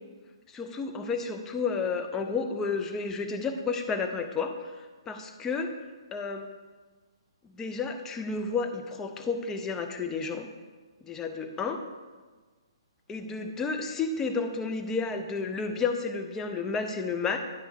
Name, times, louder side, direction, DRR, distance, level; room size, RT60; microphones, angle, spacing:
voice 1, 0.5-5.7 6.1-6.5 7.4-10.5 11.0-11.8 13.1-17.4, left 4 dB, 15° left, 5 dB, 0.7 m, -31 dB
10.0 x 3.4 x 6.4 m, 1.3 s
hypercardioid pair, 135°, 3 cm